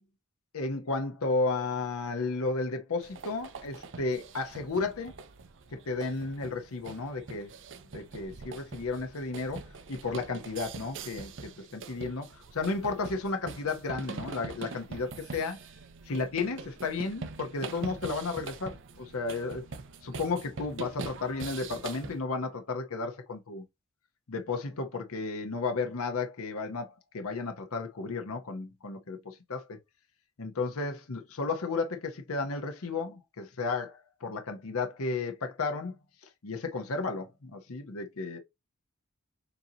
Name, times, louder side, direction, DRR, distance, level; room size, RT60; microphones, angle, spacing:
voice 1, 0.5-5.1 5.7-7.5 7.9-15.6 16.1-19.6 20.0-23.6 24.3-29.8 30.4-36.0 36.4-38.4, left 3 dB, 70° left, 0.8 m, -33 dB
sound 1, 3.0-22.2, right 4 dB, 55° right, 0.6 m, -43 dB
6.9 x 2.7 x 2.8 m
head